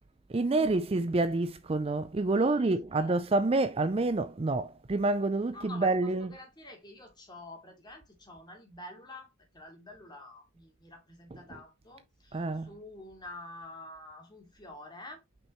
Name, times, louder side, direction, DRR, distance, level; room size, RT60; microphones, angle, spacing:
voice 1, 0.3-6.3 11.3-11.4 12.3-12.7, right 2 dB, 30° right, 0.4 m, -28 dB
voice 2, 2.4-3.2 5.5-15.2, left 2 dB, 20° left, 2.7 m, -48 dB
6.2 x 5.5 x 3.1 m
head